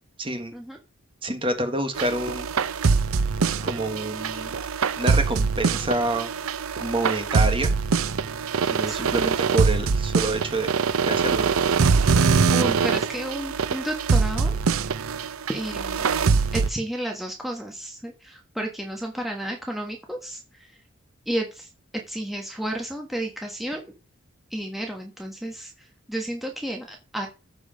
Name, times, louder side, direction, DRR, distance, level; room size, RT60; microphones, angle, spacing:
voice 1, 0.2-0.5 1.2-2.5 3.6-4.5 5.0-6.3 6.8-7.7 8.7-10.7 11.1-11.6, right 2 dB, 25° right, 6 dB, 1.5 m, -27 dB
sound 1, 2.0-16.7, right 5 dB, 90° right, 0.6 m, -23 dB
voice 2, 12.1-14.5 15.5-16.1 16.5-20.8 21.2-21.7 22.1-23.8 24.5-27.3, right 1 dB, ahead, 1 dB, 1.3 m, -32 dB
14.0 x 5.0 x 5.1 m, 0.30 s
head